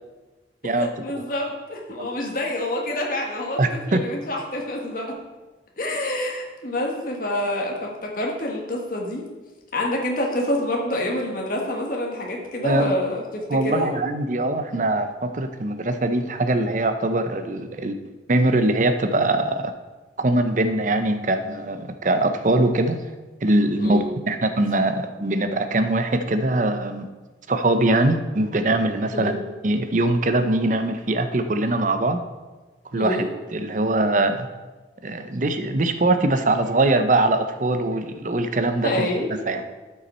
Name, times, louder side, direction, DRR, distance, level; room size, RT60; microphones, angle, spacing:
voice 1, 0.8-5.2 5.8-9.2 9.7-13.9 23.8-24.1 29.1-29.4 32.9-33.3 38.8-39.3, left 1 dB, 50° left, -1 dB, 1.5 m, -27 dB
voice 2, 3.6-4.0 12.6-12.9 13.5-17.9 18.3-19.7 20.2-23.0 23.4-27.1 27.5-29.4 29.6-32.2 32.9-34.5 35.0-39.1 39.5-39.6, right 2 dB, 45° right, 8 dB, 0.7 m, -22 dB
12.0 x 5.7 x 4.3 m, 1.2 s
head